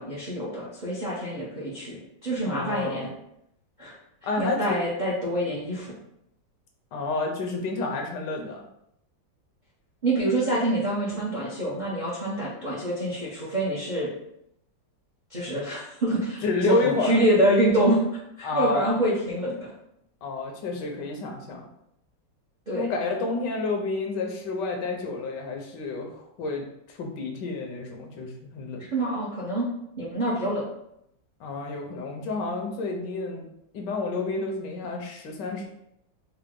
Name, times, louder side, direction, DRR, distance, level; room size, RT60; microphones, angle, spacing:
voice 1, 0.0-3.1 3.8-4.0 4.4-5.9 10.0-14.1 15.3-18.0 18.4-19.7 22.7-22.9 28.9-29.7 30.0-30.6, right 1 dB, 45° right, -7 dB, 0.6 m, -26 dB
voice 2, 2.5-3.1 4.2-4.8 6.9-8.6 16.4-17.2 18.4-18.9 20.2-21.7 22.7-28.9 31.4-33.5 33.7-35.7, left 3 dB, 75° left, 2 dB, 1.3 m, -30 dB
4.5 x 2.1 x 3.7 m, 0.77 s
omnidirectional pair, 2.0 m